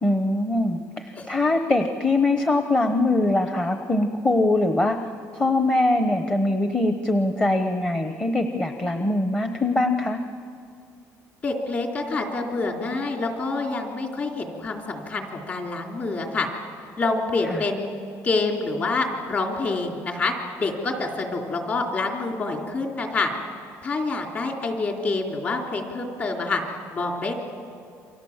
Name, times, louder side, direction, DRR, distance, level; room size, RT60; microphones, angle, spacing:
voice 1, 0.0-5.0 5.3-10.2 17.5-17.6, left 2 dB, 15° left, 6 dB, 1.0 m, -22 dB
voice 2, 11.4-16.5 17.0-17.8 18.2-23.3 23.8-26.6 26.9-27.3, left 3 dB, 30° left, 1 dB, 3.5 m, -27 dB
29.0 x 25.0 x 7.4 m, 2.3 s
cardioid pair, 160°, 6 cm